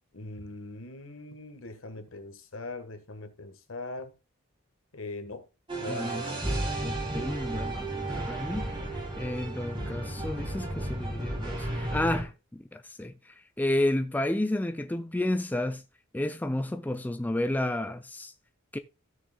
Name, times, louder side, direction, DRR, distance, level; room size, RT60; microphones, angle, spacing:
voice 1, 0.1-4.1 4.9-5.4 5.8-6.4, left 2 dB, 70° left, 1.4 m, -41 dB
sound 1, 5.7-12.2, right 1 dB, 25° right, 2.9 m, -33 dB
voice 2, 5.9-6.4 6.8-8.7 9.2-15.8 16.1-18.3 18.7-18.8, left 1 dB, 10° left, 0.4 m, -31 dB
16.0 x 6.5 x 2.2 m
head